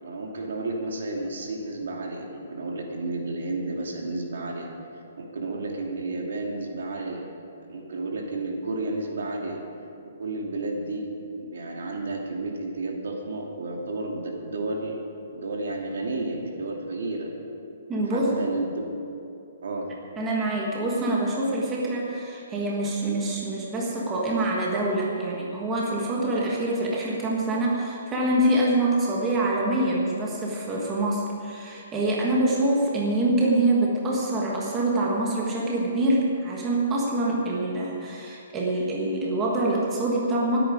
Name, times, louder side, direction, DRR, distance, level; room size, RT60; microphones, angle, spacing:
voice 1, 0.0-4.7 5.2-7.3 7.7-9.6 10.0-11.1 11.4-15.0 15.3-17.3 18.0-19.0 19.6-19.9, right 2 dB, 70° right, 0 dB, 2.6 m, -32 dB
voice 2, 17.9-18.3 20.2-40.6, right 1 dB, 10° right, -4 dB, 1.3 m, -25 dB
20.0 x 8.9 x 5.0 m, 2.7 s
hypercardioid pair, 175°, 0 cm